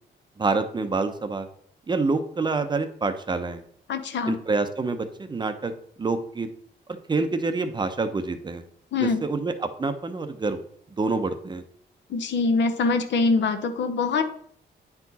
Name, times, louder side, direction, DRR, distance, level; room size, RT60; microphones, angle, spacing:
voice 1, 0.4-1.5 1.9-3.6 4.3-5.7 6.0-6.5 7.1-8.6 9.0-10.6 10.9-11.6, right 3 dB, 25° right, 8 dB, 0.6 m, -27 dB
voice 2, 3.9-4.4 8.9-9.3 12.1-14.2, left 4 dB, 75° left, 8 dB, 0.9 m, -24 dB
9.4 x 4.6 x 4.0 m, 0.63 s
wide cardioid pair, 155°, 19 cm